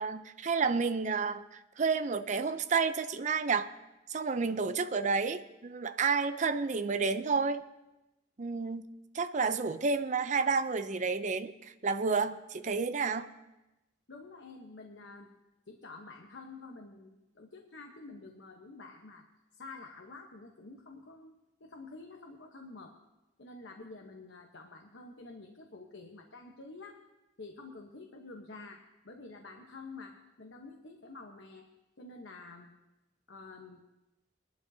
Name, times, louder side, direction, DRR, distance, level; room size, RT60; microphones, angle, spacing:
voice 1, 0.0-3.7 4.1-7.6 8.4-8.9 9.1-13.3, right 4 dB, 40° right, 11 dB, 0.5 m, -30 dB
voice 2, 14.1-15.3 15.7-19.2 19.5-21.3 21.6-22.9 23.4-27.0 27.4-31.7 32.0-32.7 33.3-33.8, left 3 dB, 75° left, 1 dB, 1.0 m, -49 dB
21.0 x 11.5 x 2.8 m, 0.99 s
head